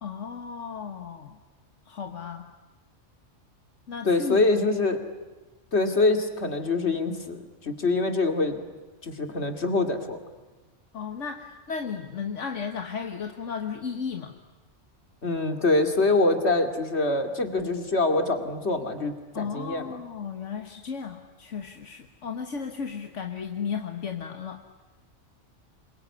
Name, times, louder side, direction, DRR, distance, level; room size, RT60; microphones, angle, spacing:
voice 1, 0.0-1.4 1.9-2.4 3.9-4.4 10.9-14.4 19.3-24.6, left 6 dB, 80° left, 5 dB, 1.8 m, -34 dB
voice 2, 4.0-5.0 5.7-8.6 9.0-10.2 15.2-20.0, left 2 dB, 60° left, 7 dB, 2.8 m, -25 dB
27.0 x 22.5 x 9.7 m, 1.2 s
omnidirectional pair, 1.2 m